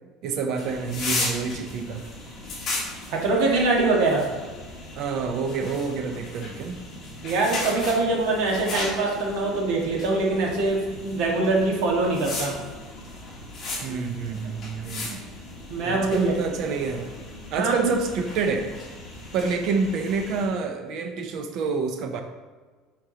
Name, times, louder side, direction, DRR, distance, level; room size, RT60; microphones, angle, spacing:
voice 1, 0.2-2.1 4.9-6.8 13.8-15.2 15.8-17.1 17.5-18.7 19.3-22.2, right 5 dB, 45° right, 6 dB, 0.6 m, -28 dB
sound 1, 0.5-20.5, left 2 dB, 25° left, 1.4 m, -36 dB
voice 2, 3.1-4.2 7.2-12.5 15.7-16.3 17.6-17.9, right 3 dB, 70° right, -1 dB, 1.6 m, -23 dB
7.9 x 5.1 x 2.9 m, 1.4 s
cardioid pair, 180°, 0 cm